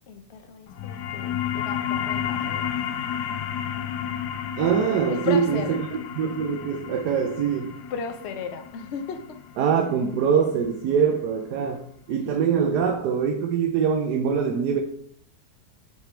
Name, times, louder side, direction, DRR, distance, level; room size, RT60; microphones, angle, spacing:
voice 1, 0.0-2.8 3.8-4.3 5.1-5.8 7.9-9.2 12.1-12.2, left 6 dB, 60° left, 6 dB, 0.7 m, -35 dB
sound 1, 0.7-11.8, left 9 dB, 85° left, 1.2 m, -32 dB
voice 2, 4.6-7.8 9.6-14.8, right 7 dB, 80° right, 4 dB, 1.2 m, -23 dB
9.0 x 3.3 x 4.4 m, 0.64 s
omnidirectional pair, 1.7 m